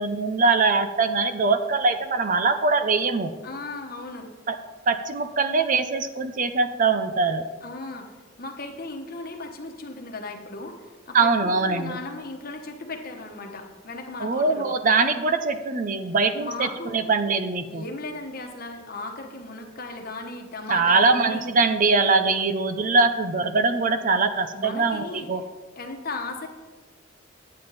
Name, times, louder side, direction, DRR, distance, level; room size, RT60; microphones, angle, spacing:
voice 1, 0.0-3.3 4.9-7.4 11.1-12.0 14.2-17.8 20.7-25.4, right 4 dB, 40° right, 9 dB, 0.5 m, -22 dB
voice 2, 3.4-4.3 7.6-14.7 16.4-16.9 17.6-21.5 24.5-25.3 25.8-26.5, left 3 dB, 50° left, 3 dB, 1.2 m, -36 dB
9.3 x 8.6 x 4.1 m, 1.3 s
head